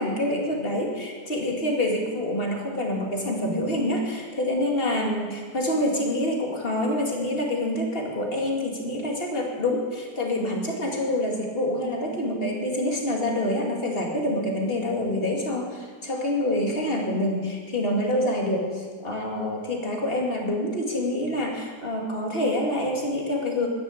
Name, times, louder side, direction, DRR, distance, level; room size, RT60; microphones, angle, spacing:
voice 1, 0.0-23.7, left 1 dB, 35° left, 0 dB, 2.5 m, -26 dB
12.0 x 10.5 x 8.6 m, 1.5 s
omnidirectional pair, 1.8 m